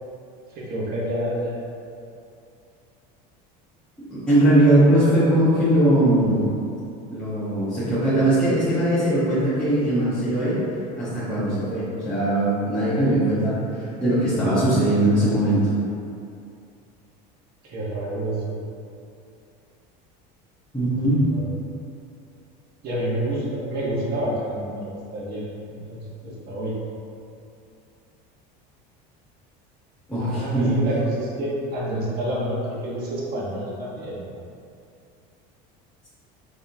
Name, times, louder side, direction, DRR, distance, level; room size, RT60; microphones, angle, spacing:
voice 1, 0.5-1.5 17.6-18.5 21.3-21.5 22.8-25.4 25.7-26.7 30.2-34.2, right 1 dB, 50° right, -6 dB, 1.3 m, -28 dB
voice 2, 4.0-6.5 7.1-10.6 11.0-15.7 20.7-21.2 30.1-30.8, right 1 dB, 5° left, -14 dB, 1.2 m, -20 dB
4.1 x 3.6 x 2.8 m, 2.5 s
supercardioid pair, 120°, 20 cm